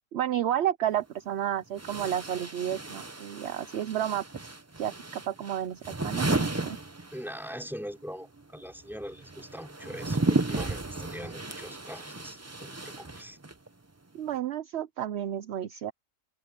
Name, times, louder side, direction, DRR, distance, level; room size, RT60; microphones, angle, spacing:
voice 1, 0.1-4.2 4.8-6.8 14.1-15.9, right 11 dB, 60° right, 0.7 m, -31 dB
sound 1, 0.8-0.9 1.8-7.6 7.8-13.7, right 2 dB, 20° right, 0.5 m, -33 dB
voice 2, 7.1-13.4, equal, ahead, 4.3 m, -42 dB
omnidirectional pair, 1.6 m